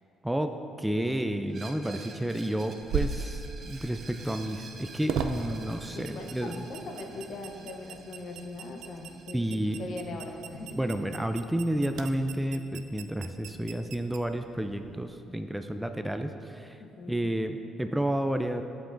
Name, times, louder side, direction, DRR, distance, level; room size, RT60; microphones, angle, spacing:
voice 1, 0.2-6.6 9.3-9.8 10.8-16.8 17.1-18.6, right 1 dB, 5° right, 7 dB, 0.4 m, -31 dB
Screech, 1.5-11.1, right 4 dB, 50° right, 0.7 m, -50 dB
sound 1, 2.8-15.1, right 6 dB, 70° right, 0.4 m, -39 dB
voice 2, 5.9-9.4 9.8-10.8 16.8-17.2, left 2 dB, 60° left, 2 dB, 0.8 m, -40 dB
8.2 x 7.5 x 2.6 m, 2.6 s
hypercardioid pair, 50°, 0 cm